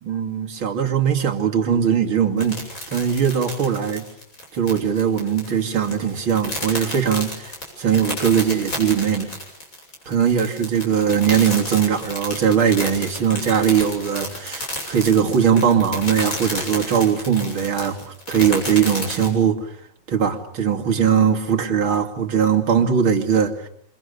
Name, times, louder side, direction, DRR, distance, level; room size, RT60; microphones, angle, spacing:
voice 1, 0.0-4.0 4.5-7.5 7.8-9.3 10.1-19.7 20.1-23.7, right 7 dB, 90° right, 3.3 m, -20 dB
sound 1, 2.4-19.3, left 1 dB, 40° left, 7.4 m, -31 dB
28.5 x 25.5 x 6.8 m
omnidirectional pair, 2.2 m